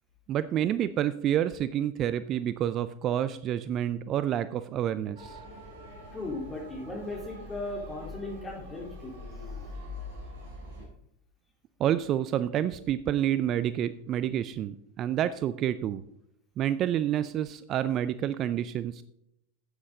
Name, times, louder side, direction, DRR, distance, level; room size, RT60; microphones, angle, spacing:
voice 1, 0.3-5.4 11.8-16.0 16.6-19.0, right 11 dB, 40° right, 14 dB, 0.4 m, -28 dB
Motor vehicle (road) / Siren, 5.1-10.9, left 2 dB, 60° right, 3.9 m, -43 dB
voice 2, 6.1-9.2, left 2 dB, 15° left, -1 dB, 3.5 m, -37 dB
9.3 x 8.6 x 3.8 m, 0.77 s
hypercardioid pair, 90°, 0 cm